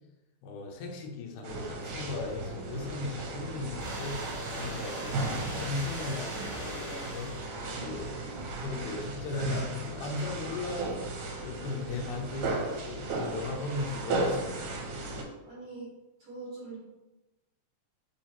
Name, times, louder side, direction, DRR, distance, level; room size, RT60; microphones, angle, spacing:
voice 1, 0.4-4.2 4.5-8.3 8.6-11.1 11.4-14.8, left 3 dB, 80° left, 1 dB, 2.0 m, -37 dB
sound 1, 1.4-15.2, right 2 dB, 85° right, 2.1 m, -35 dB
sound 2, 3.8-7.8, right 1 dB, 45° right, 1.7 m, -42 dB
voice 2, 7.7-8.6 15.4-15.9 16.2-16.8, right 3 dB, 65° right, -6 dB, 1.5 m, -44 dB
4.9 x 2.8 x 2.8 m, 1.0 s
omnidirectional pair, 3.7 m